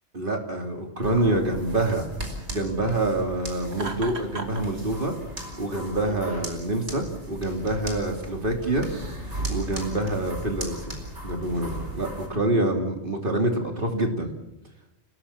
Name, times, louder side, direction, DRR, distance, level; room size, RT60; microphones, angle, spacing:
voice 1, 0.1-2.1 2.5-5.1 5.6-8.9 9.5-11.0 11.2-14.3, right 1 dB, 50° right, 3 dB, 3.2 m, -26 dB
sound 1, 1.0-12.3, right 1 dB, 90° right, 4.7 m, -37 dB
Laughter, 3.7-4.7, right 3 dB, 70° right, 2.6 m, -34 dB
30.0 x 17.5 x 7.3 m, 0.95 s
omnidirectional pair, 1.1 m